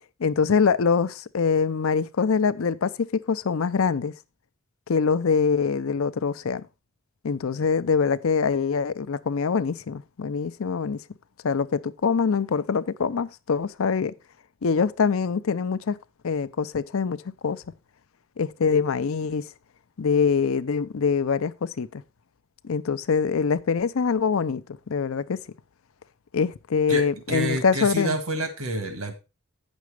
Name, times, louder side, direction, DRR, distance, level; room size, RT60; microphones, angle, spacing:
voice 1, 0.2-4.1 4.9-6.7 7.2-11.0 11.4-14.1 14.6-16.0 16.2-17.6 18.4-19.5 20.0-22.0 22.6-25.4 26.3-28.1, left 5 dB, 70° left, 0.5 m, -24 dB
voice 2, 26.9-29.2, right 1 dB, 85° right, 1.8 m, -29 dB
9.4 x 6.2 x 4.8 m
head